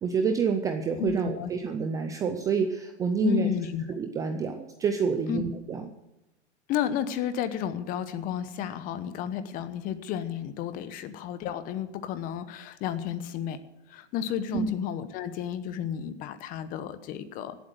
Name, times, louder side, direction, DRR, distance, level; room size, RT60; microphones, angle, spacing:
voice 1, 0.0-3.5 4.0-5.9 14.5-14.7, right 5 dB, 10° right, 6 dB, 0.5 m, -28 dB
voice 2, 1.0-1.5 3.2-3.8 5.3-5.4 6.7-13.6 13.9-17.6, left 9 dB, 25° left, 12 dB, 1.0 m, -32 dB
17.0 x 8.1 x 7.9 m, 0.96 s
hypercardioid pair, 145°, 35 cm